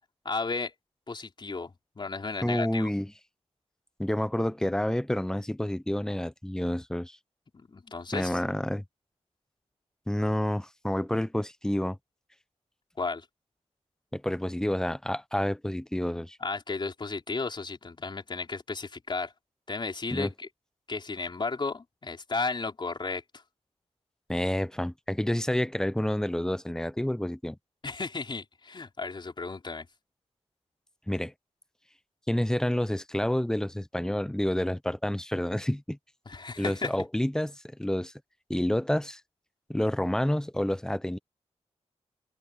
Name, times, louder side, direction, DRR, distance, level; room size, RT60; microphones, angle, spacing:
voice 1, 0.2-0.7 1.1-1.7 2.0-2.9 7.5-8.4 13.0-13.2 16.4-19.3 19.7-20.5 20.9-23.2 27.8-29.9 36.3-36.9, left 3 dB, 40° left, 4.2 m, -34 dB
voice 2, 2.4-3.1 4.0-7.2 8.1-8.8 10.1-12.0 14.1-16.4 20.1-20.3 24.3-27.6 31.1-31.3 32.3-36.0 36.6-38.1 38.5-39.2 39.7-41.2, left 1 dB, 5° left, 0.7 m, -29 dB
wide cardioid pair, 90°, 12 cm